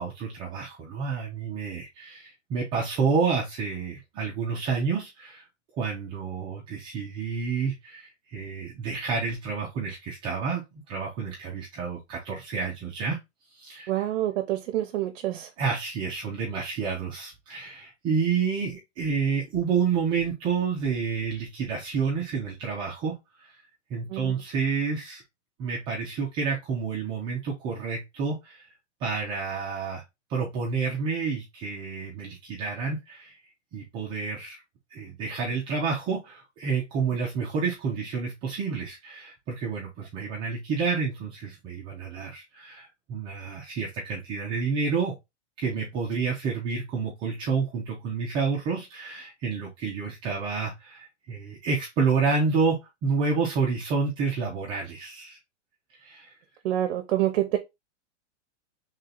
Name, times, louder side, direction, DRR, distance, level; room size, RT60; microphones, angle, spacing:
voice 1, 0.0-5.4 5.8-13.2 13.5-14.0 15.6-23.5 23.9-25.2 25.6-28.7 29.0-30.0 30.3-33.4 33.7-34.6 34.9-45.2 45.6-55.4 56.0-56.3, right 5 dB, 15° right, 0.3 m, -29 dB
voice 2, 13.9-15.5 24.1-24.3 56.6-57.6, right 13 dB, 55° right, 0.7 m, -27 dB
3.3 x 2.7 x 3.8 m
hypercardioid pair, 145°, 37 cm